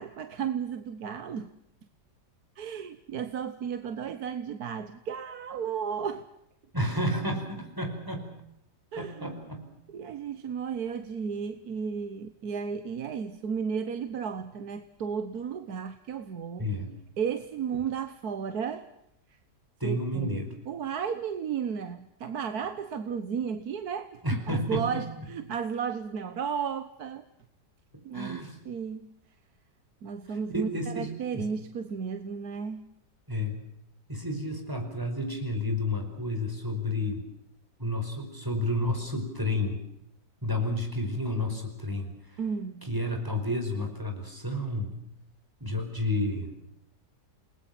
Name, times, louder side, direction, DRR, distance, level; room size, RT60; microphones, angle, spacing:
voice 1, 0.0-1.5 2.6-6.3 8.9-9.4 9.9-16.7 17.2-18.9 19.8-27.2 28.0-29.1 30.0-32.9 42.4-42.9, right 7 dB, 65° right, 10 dB, 1.6 m, -34 dB
voice 2, 6.7-8.3 9.0-9.7 16.6-16.9 19.8-20.5 24.2-25.3 28.1-28.6 30.3-31.5 33.3-33.6 34.1-37.2 37.8-39.8 40.4-42.4 42.8-45.0 45.6-46.5, left 1 dB, 10° right, 4 dB, 5.1 m, -31 dB
29.5 x 20.5 x 6.0 m, 0.77 s
omnidirectional pair, 1.9 m